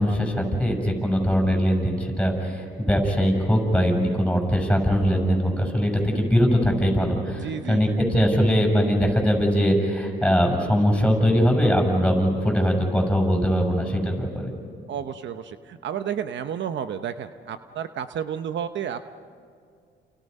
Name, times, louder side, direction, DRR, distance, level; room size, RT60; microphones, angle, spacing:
voice 1, 0.0-14.5, equal, 5° left, 2 dB, 7.4 m, -21 dB
voice 2, 7.4-8.0 14.9-19.2, right 8 dB, 65° right, 9 dB, 0.9 m, -31 dB
30.0 x 29.5 x 5.5 m, 2.2 s
cardioid pair, 90°, 20 cm